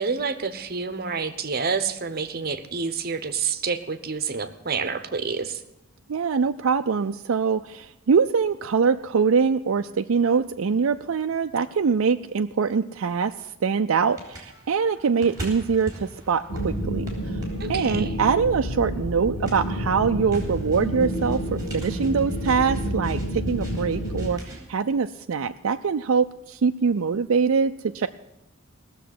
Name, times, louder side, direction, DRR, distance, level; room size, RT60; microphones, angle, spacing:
voice 1, 0.0-5.6 17.6-18.1, right 5 dB, 50° right, 10 dB, 1.1 m, -28 dB
voice 2, 6.1-13.3 13.6-17.1 17.7-28.1, right 5 dB, 85° right, 6 dB, 0.5 m, -23 dB
sound 1, 14.1-24.7, right 1 dB, 15° right, 3.8 m, -43 dB
sound 2, 16.5-24.3, equal, 60° left, 1.8 m, -29 dB
17.5 x 6.9 x 9.3 m, 0.89 s
head